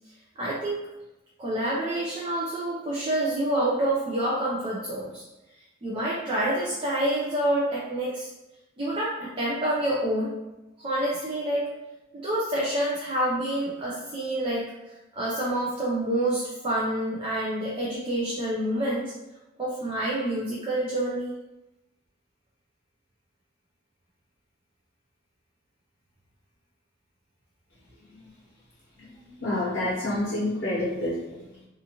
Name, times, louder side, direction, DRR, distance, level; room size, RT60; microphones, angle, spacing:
voice 1, 0.4-0.8 1.4-5.2 5.8-8.3 8.8-10.3 10.8-11.7 12.1-14.6 15.1-19.1 19.6-21.3, right 1 dB, 25° right, -6 dB, 0.4 m, -27 dB
voice 2, 29.4-31.4, left 1 dB, 55° left, -9 dB, 0.8 m, -28 dB
2.4 x 2.4 x 2.8 m, 0.99 s
head